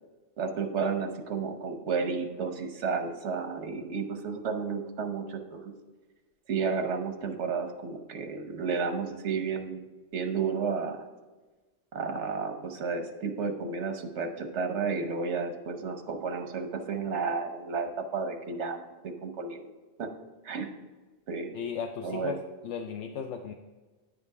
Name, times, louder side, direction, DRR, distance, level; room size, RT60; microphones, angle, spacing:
voice 1, 0.4-5.7 6.5-9.8 10.1-11.0 11.9-19.6 20.0-20.1 20.4-20.7 21.3-21.5 22.0-22.3, right 5 dB, 80° right, 6 dB, 1.2 m, -32 dB
voice 2, 21.5-23.5, left 7 dB, 85° left, 4 dB, 0.9 m, -36 dB
9.6 x 5.1 x 4.8 m, 1.3 s
omnidirectional pair, 1.2 m